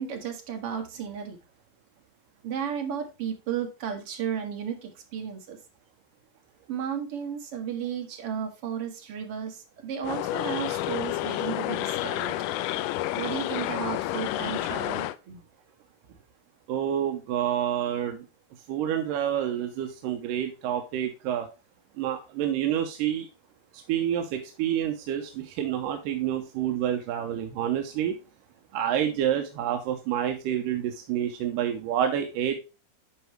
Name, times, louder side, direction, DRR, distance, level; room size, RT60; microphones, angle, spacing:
voice 1, 0.0-1.4 2.4-5.6 6.7-12.4 13.2-15.4, right 8 dB, 55° right, 1.6 m, -34 dB
sound 1, 10.0-15.2, left 15 dB, 85° left, 1.9 m, -30 dB
voice 2, 16.7-18.3 18.7-21.5 22.0-23.3 23.9-28.2 28.7-32.5, right 10 dB, 75° right, 2.2 m, -28 dB
10.0 x 4.7 x 3.1 m
omnidirectional pair, 4.3 m